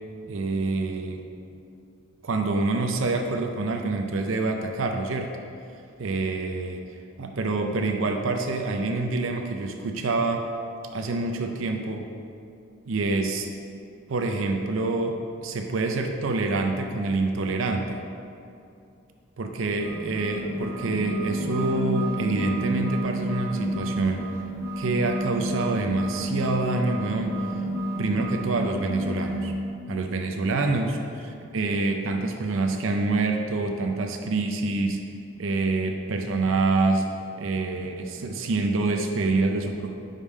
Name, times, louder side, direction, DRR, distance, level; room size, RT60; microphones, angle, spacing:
voice 1, 0.3-1.2 2.2-5.3 6.0-6.8 7.2-10.4 10.9-12.1 12.9-13.5 14.1-18.0 19.4-24.3 24.8-27.4 28.0-29.5 29.9-35.0 35.4-37.1 37.4-40.0, right 3 dB, 75° right, 4 dB, 0.5 m, -26 dB
sound 1, 19.8-29.5, equal, 10° right, 1.2 m, -29 dB
5.3 x 5.0 x 5.3 m, 2.6 s
head